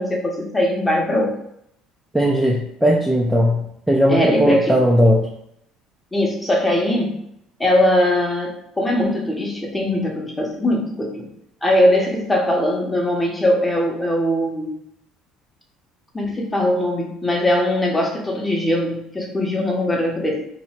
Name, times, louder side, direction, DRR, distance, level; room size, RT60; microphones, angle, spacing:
voice 1, 0.0-1.3 4.1-4.8 6.1-7.2 7.6-11.3 11.6-14.7 16.1-20.5, left 1 dB, 10° left, -1 dB, 0.9 m, -20 dB
voice 2, 2.1-5.3, equal, 5° right, -3 dB, 0.5 m, -17 dB
2.9 x 2.6 x 4.3 m, 0.76 s
cardioid pair, 135°, 0 cm